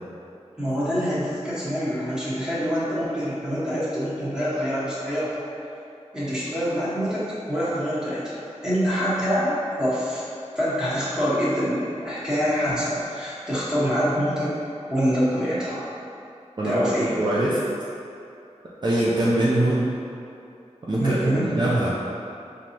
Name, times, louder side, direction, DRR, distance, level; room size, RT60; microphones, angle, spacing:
voice 1, 0.6-5.4 6.1-10.2 10.5-14.5 14.9-15.8 16.6-17.1 21.0-21.5, equal, 5° right, -11 dB, 1.5 m, -25 dB
voice 2, 16.6-17.6 18.8-19.9 20.8-22.0, right 1 dB, 40° right, -7 dB, 0.5 m, -23 dB
4.4 x 2.7 x 2.9 m, 2.6 s
wide cardioid pair, 45°, 12 cm